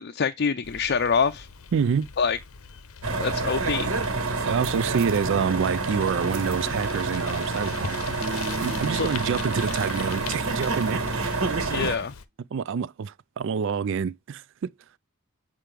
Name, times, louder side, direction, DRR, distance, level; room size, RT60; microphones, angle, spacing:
voice 1, 0.0-1.5 2.2-2.4 3.1-3.9 8.4-8.6 9.0-9.1 11.7-12.1, left 6 dB, 50° left, 0.5 m, -25 dB
Bicycle, 0.6-12.2, left 7 dB, 80° left, 0.8 m, -42 dB
voice 2, 1.7-2.1 4.4-8.1 8.6-11.0 12.5-14.7, right 6 dB, 60° right, 0.3 m, -27 dB
sound 1, 3.0-12.0, right 3 dB, 75° right, 1.6 m, -28 dB
sound 2, 8.2-11.4, right 2 dB, 35° right, 0.8 m, -38 dB
7.5 x 4.6 x 3.4 m
head